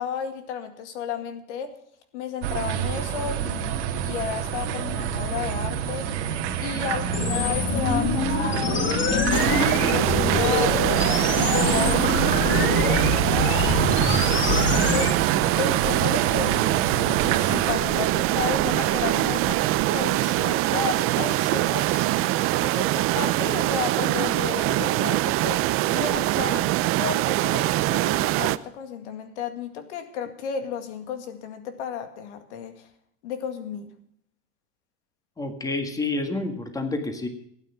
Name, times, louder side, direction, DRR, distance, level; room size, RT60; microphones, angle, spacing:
voice 1, 0.0-1.7 2.1-6.3 6.6-15.2 15.5-22.1 22.6-25.6 25.9-26.7 27.0-32.9 33.2-33.9, left 7 dB, 90° left, 8 dB, 2.1 m, -33 dB
sound 1, 2.4-17.7, right 8 dB, 85° right, 2.1 m, -28 dB
sound 2, 7.1-15.1, left 5 dB, 35° left, 2.0 m, -26 dB
sound 3, 9.3-28.6, right 16 dB, 40° right, 0.6 m, -23 dB
voice 2, 35.4-37.3, left 2 dB, 10° left, 6 dB, 1.7 m, -29 dB
16.5 x 9.3 x 5.8 m, 0.71 s
supercardioid pair, 140°, 34 cm